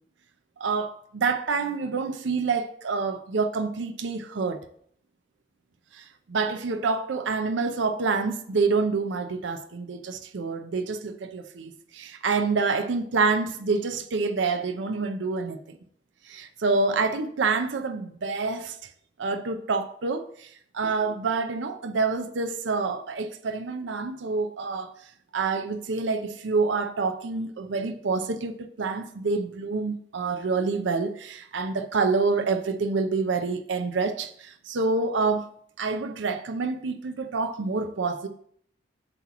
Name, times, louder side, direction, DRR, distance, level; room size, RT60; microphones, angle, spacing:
voice 1, 0.6-4.6 5.9-15.8 16.3-18.8 19.2-24.9 25.3-35.5 35.8-38.3, right 4 dB, 80° right, 0.5 m, -27 dB
7.8 x 2.9 x 5.9 m
head